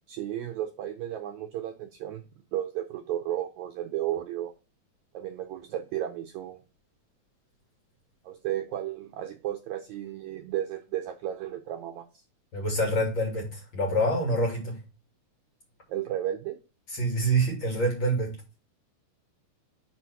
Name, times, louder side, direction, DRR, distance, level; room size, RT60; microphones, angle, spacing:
voice 1, 0.1-2.2 2.5-4.5 5.1-6.6 8.2-12.2 15.9-16.6, right 12 dB, 90° right, 4 dB, 1.6 m, -33 dB
voice 2, 12.5-14.8 16.9-18.3, right 1 dB, 35° left, -1 dB, 3.2 m, -26 dB
6.0 x 4.3 x 5.9 m, 0.32 s
omnidirectional pair, 4.3 m